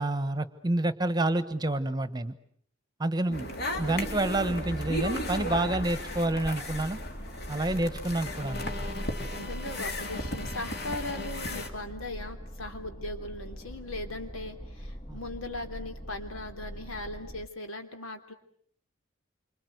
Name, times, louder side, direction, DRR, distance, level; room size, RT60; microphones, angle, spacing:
voice 1, 0.0-2.3 3.0-3.5 3.8-7.0 7.5-8.7 15.1-15.2, right 2 dB, 20° right, 14 dB, 1.2 m, -28 dB
voice 2, 3.3-3.6 9.3-18.3, left 2 dB, 85° left, 6 dB, 3.3 m, -39 dB
sound 1, 3.3-11.7, left 1 dB, 50° left, 2.9 m, -35 dB
sound 2, 3.8-17.5, equal, 25° left, 1.2 m, -43 dB
28.0 x 25.5 x 8.0 m, 0.63 s
head